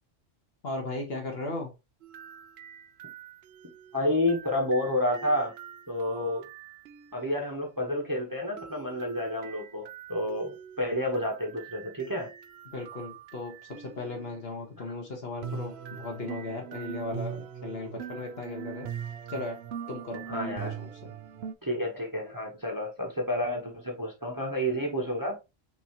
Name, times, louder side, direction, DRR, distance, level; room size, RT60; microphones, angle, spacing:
voice 1, 0.6-1.7 12.7-18.9 19.3-19.6 19.9-21.1, left 2 dB, 55° left, 1.4 m, -37 dB
sound 1, 2.0-7.3 8.6-14.3 15.4-21.5, right 8 dB, 65° right, 0.8 m, -42 dB
voice 2, 3.9-5.5 5.9-6.5 7.1-12.3 20.3-20.8 21.6-25.4, left 1 dB, 15° right, 1.0 m, -30 dB
6.0 x 2.8 x 2.9 m
omnidirectional pair, 1.3 m